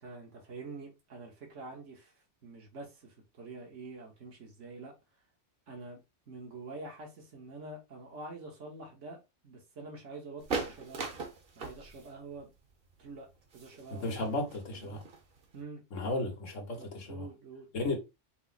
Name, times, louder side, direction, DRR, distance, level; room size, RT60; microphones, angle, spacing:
voice 1, 0.0-4.9 5.7-6.0 6.3-11.0 11.5-12.5 13.0-13.3 13.5-14.3 14.7-15.0 15.5-15.8 16.8-17.7, right 3 dB, 75° right, 1.6 m, -46 dB
sound 1, 10.4-15.6, right 4 dB, 50° right, 1.1 m, -40 dB
voice 2, 13.9-15.0 15.9-17.2 17.7-18.0, left 2 dB, 85° left, 1.6 m, -34 dB
5.4 x 2.1 x 4.0 m
omnidirectional pair, 1.3 m